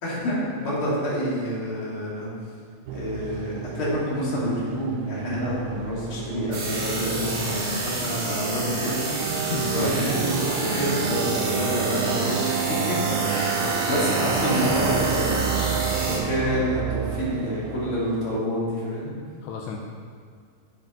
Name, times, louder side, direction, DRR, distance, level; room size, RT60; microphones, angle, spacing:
voice 1, 0.0-2.3 2.9-12.4 12.9-13.0 13.2-13.6 13.9-15.6 16.1-19.1, equal, 35° left, -7 dB, 3.0 m, -27 dB
sound 1, 2.9-18.4, right 8 dB, 85° right, 3.0 m, -30 dB
sound 2, 6.5-16.2, right 2 dB, 55° right, 3.8 m, -29 dB
voice 2, 9.5-9.9 13.6-13.9 19.4-19.8, left 6 dB, 85° left, 0 dB, 2.6 m, -33 dB
10.0 x 7.5 x 5.9 m, 2.1 s
omnidirectional pair, 5.6 m